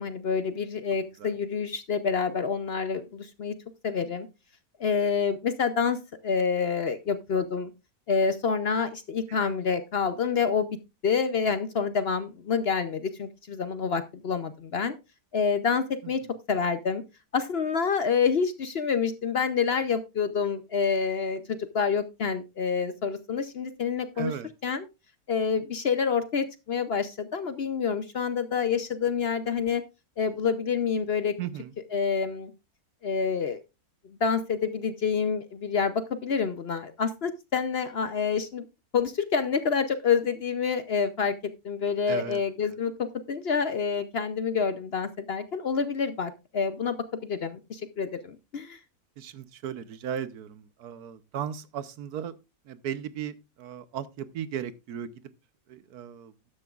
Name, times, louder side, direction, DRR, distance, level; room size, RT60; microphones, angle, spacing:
voice 1, 0.0-3.5 3.8-4.3 4.8-6.0 6.2-7.7 8.1-10.8 11.0-15.0 15.3-16.2 16.5-17.0 17.3-24.3 24.6-24.9 25.3-29.8 30.2-31.3 31.9-32.5 33.0-33.6 34.2-38.6 38.9-47.0 47.2-48.8, left 6 dB, 55° left, 0.8 m, -27 dB
voice 2, 24.2-24.5 31.4-31.7 42.1-42.4 49.2-52.3 52.7-55.1 55.7-56.3, right 9 dB, 80° right, 1.3 m, -36 dB
13.0 x 9.9 x 2.4 m
omnidirectional pair, 1.6 m